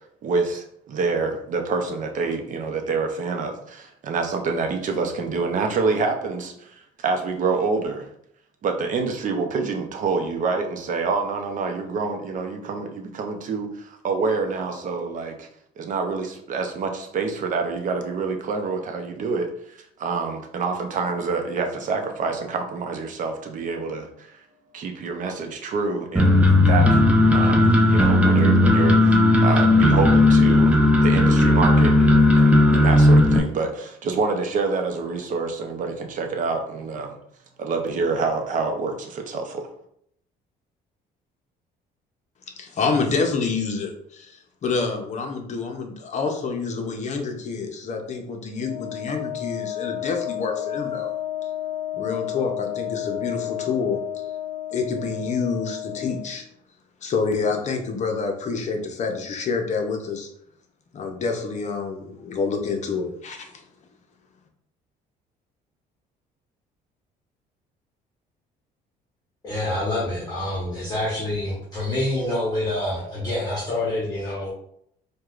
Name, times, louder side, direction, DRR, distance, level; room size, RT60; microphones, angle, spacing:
voice 1, 0.2-8.1 8.6-15.5 15.8-24.4 24.7-27.0 27.3-37.2 37.6-39.7, right 4 dB, 50° right, 4 dB, 0.6 m, -27 dB
sound 1, 26.2-33.4, left 1 dB, 10° right, 0.5 m, -15 dB
voice 2, 42.6-51.1 51.9-54.2 54.7-56.4 57.0-60.3 60.9-63.6, left 4 dB, 45° left, 4 dB, 0.7 m, -27 dB
Wind instrument woodwind instrument, 48.6-56.4, left 12 dB, 85° left, 0.5 m, -31 dB
voice 3, 69.4-74.5, left 1 dB, 25° left, -7 dB, 1.0 m, -27 dB
4.6 x 2.2 x 2.4 m, 0.71 s
cardioid pair, 110°, 17 cm